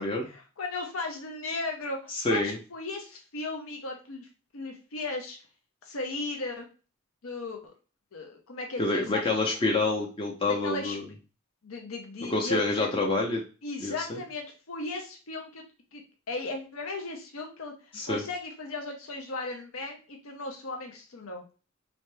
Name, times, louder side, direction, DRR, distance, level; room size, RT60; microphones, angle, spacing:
voice 1, 0.0-4.3 4.5-5.4 5.8-6.7 7.2-7.7 8.1-9.3 10.5-11.0 11.6-12.9 13.6-15.6 15.9-16.0 16.3-21.4, left 2 dB, 90° left, 3 dB, 0.7 m, -36 dB
voice 2, 2.2-2.6 8.8-11.0 12.3-13.4 13.8-13.9 17.9-18.2, left 2 dB, 25° left, -1 dB, 0.5 m, -27 dB
4.3 x 2.7 x 3.2 m, 0.35 s
head